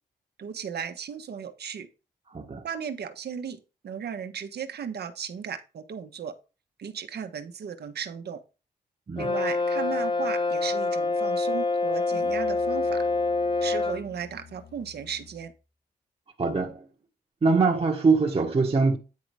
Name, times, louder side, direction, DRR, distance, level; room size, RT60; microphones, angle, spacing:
voice 1, 0.4-1.9 2.6-3.6 3.8-6.3 6.8-8.4 9.2-13.0 13.6-15.5, right 7 dB, 70° right, 1.3 m, -36 dB
voice 2, 2.3-2.6 9.1-9.3 16.4-16.9 17.4-19.0, right 4 dB, 35° right, 1.3 m, -23 dB
Brass instrument, 9.2-14.1, left 3 dB, 30° left, 0.8 m, -26 dB
Musical instrument, 12.1-15.6, left 6 dB, 75° left, 1.7 m, -49 dB
9.6 x 4.0 x 4.8 m
cardioid pair, 60°, 17 cm